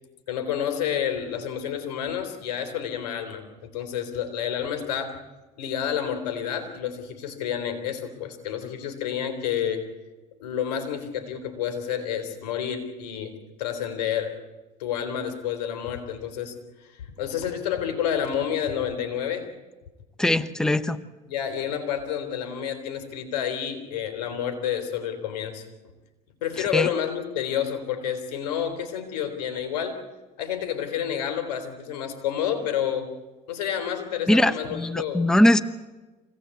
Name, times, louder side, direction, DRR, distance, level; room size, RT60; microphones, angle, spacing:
voice 1, 0.3-5.2 5.6-9.8 10.4-13.3 13.6-14.3 14.8-16.5 16.8-19.5 21.3-25.6 26.4-30.0 30.4-33.1 33.5-35.3, left 9 dB, 85° left, 6 dB, 3.7 m, -29 dB
voice 2, 20.2-21.0 26.6-26.9 34.3-35.6, left 1 dB, 5° left, 13 dB, 0.9 m, -21 dB
25.5 x 17.5 x 8.4 m, 1.2 s
supercardioid pair, 90°, 20 cm